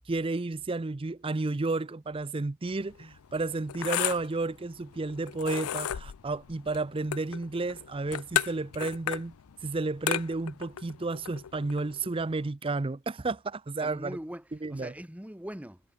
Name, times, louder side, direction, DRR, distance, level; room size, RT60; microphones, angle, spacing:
voice 1, 0.1-9.3 9.6-14.2 14.6-14.9, right 3 dB, 25° right, 0.5 m, -32 dB
sound 1, 2.7-12.5, left 11 dB, 75° left, 0.4 m, -35 dB
voice 2, 13.8-15.8, equal, 5° right, 1.1 m, -41 dB
head